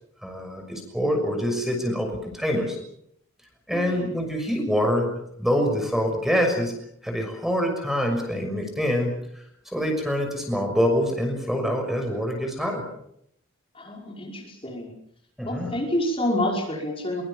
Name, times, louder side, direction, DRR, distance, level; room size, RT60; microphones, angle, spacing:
voice 1, 0.2-2.8 3.7-5.1 5.4-6.7 7.0-9.4 9.7-12.8 15.4-15.8, equal, ahead, 3 dB, 6.2 m, -25 dB
voice 2, 3.7-4.0 13.7-14.9 15.4-17.2, left 1 dB, 25° left, 0 dB, 5.4 m, -28 dB
24.5 x 24.0 x 7.1 m, 0.72 s
head